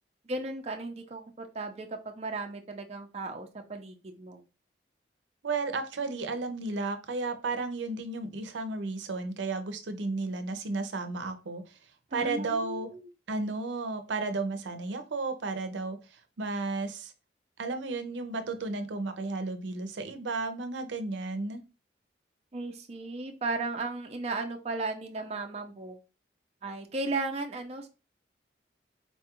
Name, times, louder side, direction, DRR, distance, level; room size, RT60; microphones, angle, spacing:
voice 1, 0.3-4.4 12.1-13.1 22.5-26.0 26.6-27.9, right 3 dB, 35° right, 4 dB, 0.5 m, -35 dB
voice 2, 5.4-11.8 12.1-12.9 13.3-17.1 17.6-21.6, right 3 dB, 90° right, 8 dB, 0.6 m, -33 dB
4.2 x 2.3 x 2.9 m, 0.31 s
head